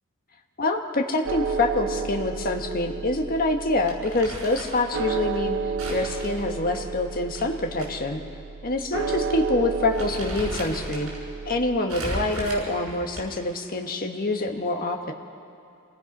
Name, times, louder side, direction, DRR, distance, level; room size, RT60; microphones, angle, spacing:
voice 1, 0.6-5.6 5.9-8.2 8.6-11.1 11.5-15.1, left 2 dB, 45° left, 3 dB, 1.5 m, -26 dB
sound 1, 1.3-11.8, right 5 dB, 60° right, 0.7 m, -32 dB
Crumpling crinkling, 3.9-4.9 5.8-7.9 8.2-8.3 9.1-9.3 9.6-11.2 11.9-13.5, right 1 dB, 80° right, 6.0 m, -36 dB
27.5 x 18.5 x 5.5 m, 2.4 s
head